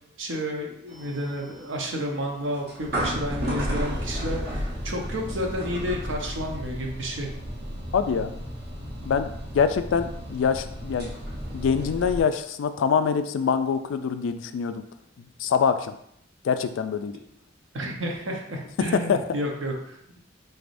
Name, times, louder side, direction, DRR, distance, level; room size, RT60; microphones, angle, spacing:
voice 1, 0.2-7.3 17.7-20.2, equal, 75° right, 0 dB, 0.8 m, -31 dB
sound 1, 0.9-12.2, equal, 55° right, 1.0 m, -33 dB
voice 2, 7.9-8.3 9.1-11.1 11.5-14.8 15.2-15.9 16.4-17.1 18.8-19.2, left 6 dB, 80° left, 10 dB, 0.3 m, -25 dB
3.9 x 3.4 x 2.5 m, 0.72 s
head